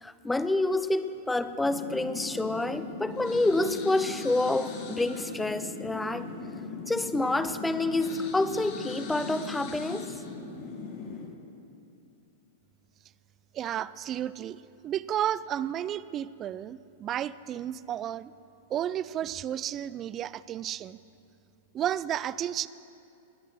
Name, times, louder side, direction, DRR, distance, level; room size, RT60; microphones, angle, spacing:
voice 1, 0.0-6.3 6.9-10.1, left 2 dB, 10° left, 12 dB, 0.6 m, -28 dB
sound 1, 1.6-11.3, left 4 dB, 55° left, 2.3 m, -39 dB
voice 2, 13.5-18.3 18.7-21.0 21.7-22.7, right 10 dB, 30° right, 17 dB, 0.4 m, -32 dB
21.0 x 8.6 x 6.4 m, 2.5 s
hypercardioid pair, 100°, 0 cm